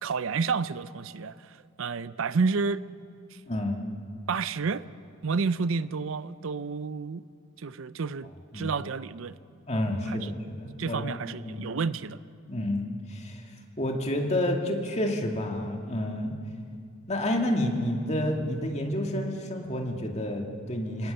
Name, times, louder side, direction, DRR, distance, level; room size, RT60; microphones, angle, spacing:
voice 1, 0.0-2.8 3.3-3.4 4.3-4.8 5.2-7.2 7.6-9.4 9.9-10.3 10.8-12.2, right 4 dB, 70° right, 0.5 m, -30 dB
voice 2, 3.5-3.8 8.5-8.8 9.7-11.2 11.4-11.7 12.5-13.4 13.8-16.4 17.1-21.1, left 1 dB, 30° left, 2.2 m, -29 dB
29.0 x 18.0 x 6.9 m
head